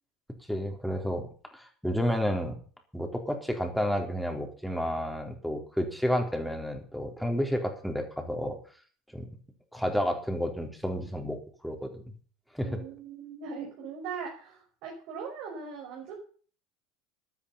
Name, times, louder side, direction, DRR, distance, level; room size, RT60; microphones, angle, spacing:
voice 1, 0.5-2.6 2.9-8.6 9.1-9.3 9.7-12.0 12.5-12.8, equal, ahead, 4 dB, 4.1 m, -31 dB
voice 2, 12.6-16.2, right 5 dB, 55° right, -1 dB, 6.1 m, -40 dB
13.0 x 13.0 x 5.7 m, 0.42 s
figure-of-eight pair, 75°, 0 cm